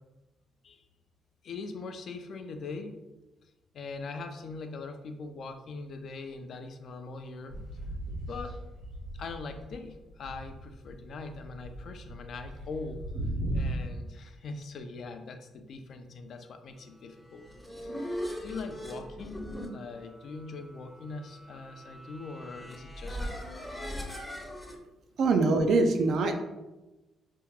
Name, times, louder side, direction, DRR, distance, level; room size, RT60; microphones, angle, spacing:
voice 1, 1.4-3.0 3.7-7.6 8.3-8.6 9.1-13.1 13.5-17.5 17.8-18.1 18.4-23.4, left 3 dB, 60° left, 7 dB, 0.4 m, -41 dB
sound 1, 7.5-9.8 10.1-13.8, right 1 dB, 85° right, 1.3 m, -37 dB
sound 2, 17.2-24.8, equal, 5° left, 0.6 m, -40 dB
voice 2, 25.2-26.3, right 3 dB, 65° right, 6 dB, 0.4 m, -23 dB
2.9 x 2.3 x 3.6 m, 1.1 s
cardioid pair, 90°, 0 cm